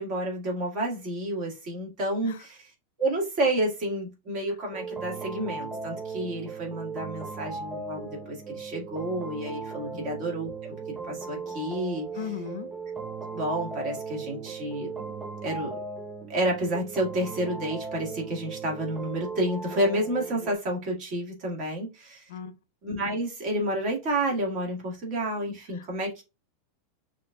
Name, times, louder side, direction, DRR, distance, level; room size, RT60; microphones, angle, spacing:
voice 1, 0.0-2.6 3.0-12.1 13.3-14.9 15.4-15.8 16.3-22.3 22.8-26.2, right 1 dB, 30° right, 2.0 m, -30 dB
sound 1, 4.7-20.5, right 4 dB, 10° right, 0.5 m, -37 dB
voice 2, 12.1-12.7 22.3-22.6 25.7-25.9, left 9 dB, 75° left, 0.8 m, -38 dB
6.2 x 2.9 x 2.3 m
supercardioid pair, 175°, 0 cm